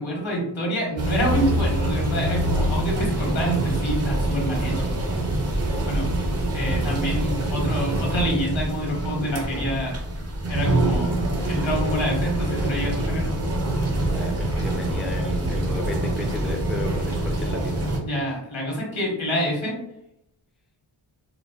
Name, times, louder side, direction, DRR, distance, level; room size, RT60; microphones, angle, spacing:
voice 1, 0.0-4.9 5.8-6.1 6.5-9.9 10.5-11.1 11.5-13.3 18.0-19.8, equal, 80° left, -1 dB, 1.1 m, -27 dB
sound 1, 1.0-18.0, right 1 dB, 35° right, 0.7 m, -25 dB
voice 2, 13.9-17.9, left 1 dB, ahead, 2 dB, 0.4 m, -34 dB
3.9 x 2.1 x 2.3 m, 0.80 s
wide cardioid pair, 75°, 46 cm